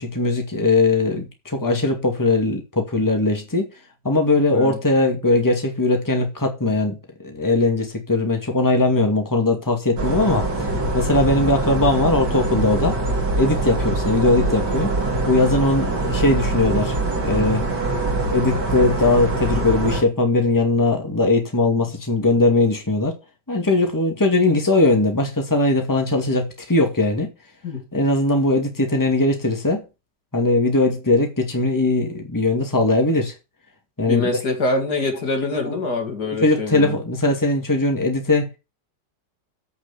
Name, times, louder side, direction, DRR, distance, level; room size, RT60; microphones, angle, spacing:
voice 1, 0.0-3.7 4.0-10.7 10.9-13.0 13.4-14.9 15.3-17.0 17.2-17.7 18.3-23.1 23.5-27.3 27.9-29.8 30.3-33.3 34.0-34.4 35.5-35.8 36.4-38.5, left 2 dB, 10° left, 2.2 m, -20 dB
sound 1, 10.0-20.0, right 2 dB, 75° right, 3.3 m, -23 dB
voice 2, 34.0-37.0, left 3 dB, 65° left, 2.9 m, -25 dB
8.3 x 7.0 x 8.5 m
omnidirectional pair, 1.9 m